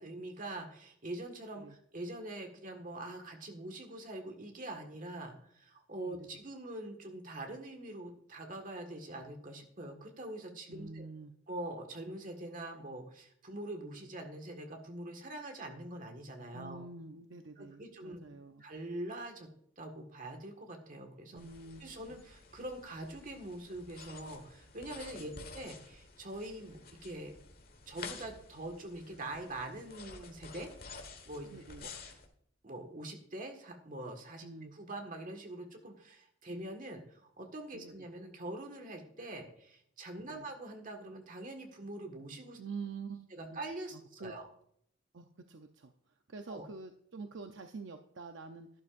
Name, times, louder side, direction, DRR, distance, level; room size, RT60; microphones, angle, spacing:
voice 1, 0.0-11.1 11.5-16.8 17.6-19.5 19.8-21.4 21.8-27.3 27.9-30.7 31.3-31.5 31.8-32.2 32.6-42.6 43.3-44.5 46.5-46.7, right 1 dB, 45° right, 4 dB, 1.6 m, -44 dB
voice 2, 10.7-11.3 16.5-18.6 21.3-21.9 25.1-25.4 31.5-31.8 34.4-34.7 37.7-38.1 40.2-40.5 42.6-43.4 43.9-44.3 45.1-45.9 46.3-48.7, right 4 dB, 65° right, 5 dB, 0.6 m, -46 dB
sound 1, 21.4-32.3, left 4 dB, 50° left, 1.4 m, -51 dB
12.0 x 11.0 x 2.5 m, 0.69 s
head